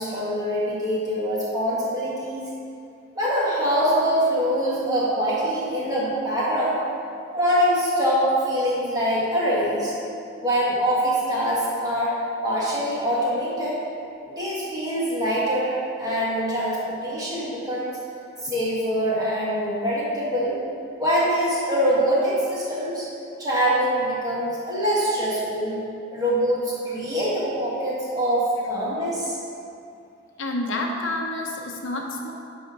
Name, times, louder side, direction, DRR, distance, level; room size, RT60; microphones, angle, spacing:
voice 1, 0.0-2.4 3.2-6.8 7.3-9.9 10.4-12.2 12.4-13.8 14.2-15.7 16.0-18.0 18.4-20.6 21.0-23.1 23.4-25.8 26.1-29.4, equal, 20° right, -8 dB, 2.1 m, -24 dB
voice 2, 30.4-32.3, left 2 dB, 70° left, 0 dB, 1.0 m, -28 dB
9.9 x 4.1 x 6.2 m, 2.5 s
head